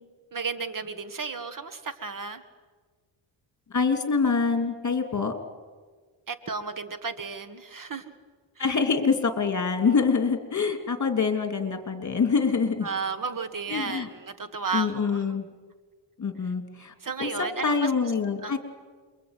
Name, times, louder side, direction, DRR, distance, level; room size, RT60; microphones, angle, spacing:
voice 1, 0.3-2.4 6.3-8.1 8.6-8.8 12.8-15.4 17.0-17.9 18.4-18.6, right 5 dB, 40° right, 10 dB, 1.7 m, -33 dB
voice 2, 3.7-5.3 8.6-12.9 13.7-14.1 14.7-15.5 16.2-16.9 17.2-17.3 17.6-18.6, left 5 dB, 35° left, 6 dB, 3.1 m, -25 dB
28.0 x 23.0 x 9.1 m, 1.4 s
cardioid pair, 115°, 48 cm